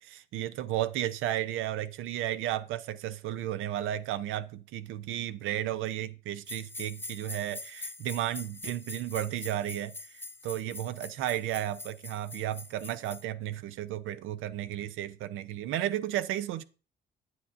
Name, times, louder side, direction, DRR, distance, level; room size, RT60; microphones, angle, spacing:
voice 1, 0.0-16.6, right 12 dB, 85° right, 0.5 m, -33 dB
sound 1, 6.5-13.2, left 2 dB, 10° left, 0.4 m, -44 dB
9.5 x 8.5 x 2.5 m
cardioid pair, 90°, 20 cm